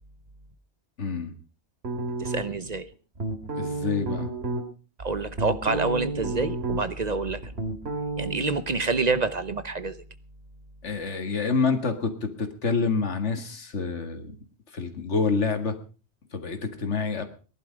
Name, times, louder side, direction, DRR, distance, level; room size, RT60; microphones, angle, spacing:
voice 1, 1.0-1.3 3.5-4.3 10.8-14.3 14.7-15.8 16.3-17.2, left 4 dB, 85° left, 8 dB, 2.1 m, -27 dB
sound 1, 1.8-2.7 3.2-4.6 5.1-7.0 7.3-8.4, right 2 dB, 65° right, 2.6 m, -31 dB
voice 2, 2.2-2.9 5.0-7.5 8.2-10.0, right 3 dB, 40° right, 13 dB, 0.9 m, -27 dB
18.5 x 11.5 x 5.1 m, 0.37 s
omnidirectional pair, 1.2 m